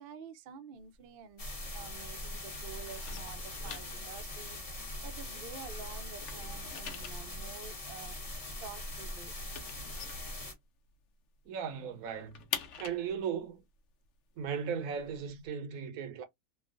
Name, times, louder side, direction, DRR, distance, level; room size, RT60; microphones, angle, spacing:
voice 1, 0.0-8.2 8.6-9.3, right 6 dB, 60° right, 0.6 m, -49 dB
sound 1, 0.8-2.2 2.5-5.7 6.0-11.0 11.3-11.4 11.7-15.5, left 8 dB, 65° left, 0.9 m, -45 dB
sound 2, 1.4-10.5, left 1 dB, 30° left, 0.9 m, -42 dB
voice 2, 11.5-12.5 12.8-13.6 14.4-16.2, right 7 dB, 90° right, 1.1 m, -37 dB
3.1 x 2.2 x 2.4 m
omnidirectional pair, 1.4 m